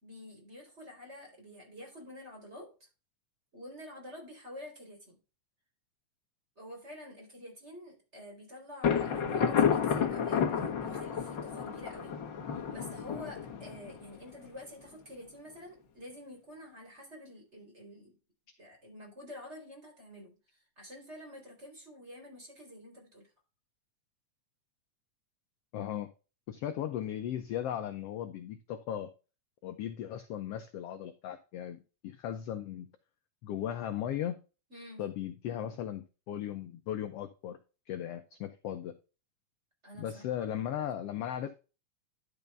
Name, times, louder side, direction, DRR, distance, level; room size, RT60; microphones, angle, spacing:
voice 1, 0.0-2.9 3.5-5.2 6.6-12.2 12.5-18.2 18.6-20.3 20.8-23.3 34.7-35.0 39.8-40.8, left 1 dB, 20° right, 0 dB, 4.1 m, -48 dB
Thunder, 8.8-14.5, left 7 dB, 50° left, 1.5 m, -31 dB
voice 2, 25.7-26.1 26.5-29.1 29.6-32.9 33.4-34.4 35.0-37.6 37.9-38.9 40.0-41.6, left 10 dB, 75° left, 7 dB, 1.4 m, -37 dB
11.0 x 5.4 x 3.4 m, 0.32 s
omnidirectional pair, 3.6 m